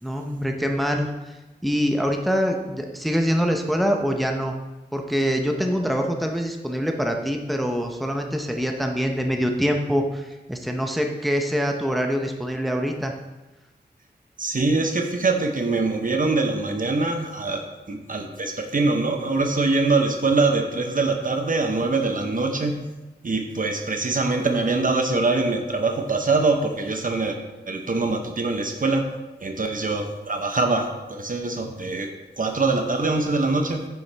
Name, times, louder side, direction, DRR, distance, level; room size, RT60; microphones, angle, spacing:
voice 1, 0.0-1.4 1.6-4.5 4.9-13.1, equal, ahead, 3 dB, 0.8 m, -24 dB
voice 2, 14.4-22.8 23.2-27.4 27.7-29.1 29.4-33.9, right 3 dB, 50° right, 4 dB, 0.9 m, -23 dB
9.7 x 6.9 x 3.4 m, 1.1 s
wide cardioid pair, 100°, 18 cm